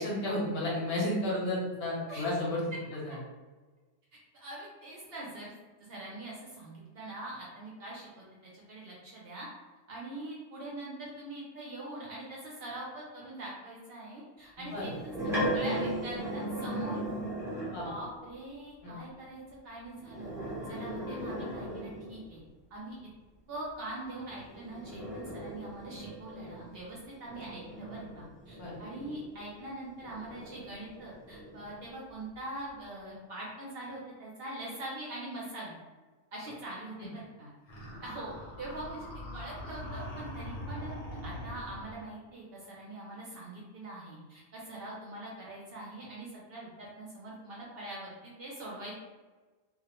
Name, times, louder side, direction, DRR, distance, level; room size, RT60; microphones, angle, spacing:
voice 1, 0.0-2.6 2.9-3.2 14.7-14.9 17.7-17.8 18.8-18.9 28.6-28.7, left 1 dB, 60° left, -5 dB, 0.8 m, -32 dB
voice 2, 4.3-5.5 5.8-9.5 9.9-17.0 17.8-20.3 20.7-22.4 22.7-23.0 23.5-35.7 36.3-37.5 38.0-41.0 41.2-48.9, right 1 dB, 60° right, -4 dB, 0.6 m, -43 dB
sound 1, 14.7-18.0 20.0-22.3 24.3-29.5 30.0-31.8, equal, 5° right, 0.3 m, -37 dB
sound 2, 37.7-42.0, equal, 85° left, 1.1 m, -42 dB
2.3 x 2.0 x 2.9 m, 1.3 s
omnidirectional pair, 1.3 m